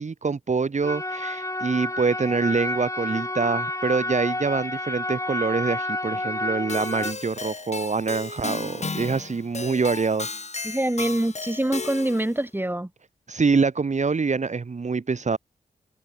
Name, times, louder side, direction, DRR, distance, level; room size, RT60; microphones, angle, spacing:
voice 1, 0.0-10.3 13.3-15.4, right 4 dB, 50° right, 2.0 m, -25 dB
sound 1, 0.8-7.1, left 1 dB, 20° left, 3.9 m, -30 dB
Keyboard (musical), 6.7-12.4, left 4 dB, 45° left, 5.0 m, -34 dB
voice 2, 10.6-12.9, right 1 dB, 15° right, 5.2 m, -25 dB
cardioid pair, 45°, 15 cm